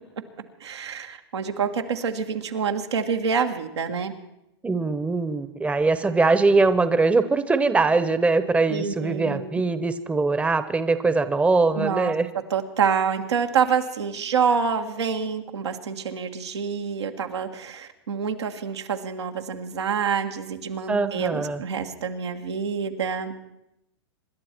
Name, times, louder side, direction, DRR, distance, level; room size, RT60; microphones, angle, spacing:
voice 1, 0.6-4.1 8.7-9.6 11.7-12.1 12.5-23.3, right 6 dB, 90° right, 4 dB, 1.7 m, -27 dB
voice 2, 4.6-12.3 20.9-21.6, right 3 dB, 10° right, 12 dB, 0.8 m, -22 dB
26.5 x 11.5 x 4.5 m, 0.85 s
hypercardioid pair, 115°, 14 cm